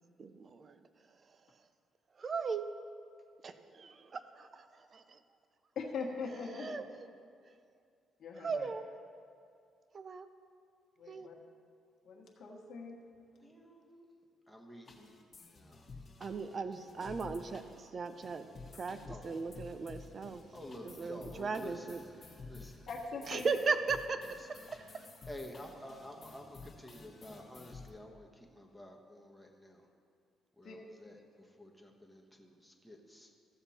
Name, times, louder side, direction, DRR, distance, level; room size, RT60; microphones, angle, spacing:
voice 1, 0.2-0.8 2.2-2.7 3.4-4.6 4.9-5.2 6.3-7.1 8.4-8.8 9.9-10.3 11.1-11.3 16.2-18.5 18.7-20.4 20.8-22.0 23.2-24.9, right 4 dB, 40° right, 10 dB, 0.6 m, -38 dB
voice 2, 5.7-6.8 8.2-8.7 11.0-11.3 12.0-13.0 22.9-23.5 30.6-30.8, left 4 dB, 55° left, -2 dB, 1.4 m, -41 dB
voice 3, 13.4-14.0 14.5-15.1 15.5-15.8 19.1-19.4 20.5-22.2 22.5-22.9 25.3-29.8 30.6-31.2 31.6-33.3, left 1 dB, ahead, 0 dB, 1.3 m, -50 dB
sound 1, 14.9-27.9, left 3 dB, 35° left, 1.4 m, -52 dB
14.5 x 7.1 x 4.3 m, 2.3 s
cardioid pair, 105°, 0 cm